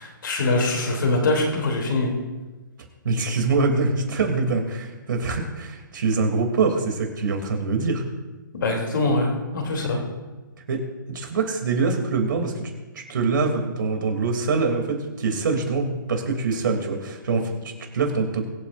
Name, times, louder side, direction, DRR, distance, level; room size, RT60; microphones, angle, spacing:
voice 1, 0.0-2.1 8.5-10.0, left 2 dB, 70° left, 1 dB, 3.1 m, -23 dB
voice 2, 3.0-8.0 10.7-12.7 12.9-18.5, right 4 dB, 70° right, 3 dB, 2.9 m, -24 dB
22.5 x 8.0 x 2.6 m, 1.2 s
hypercardioid pair, 140°, 11 cm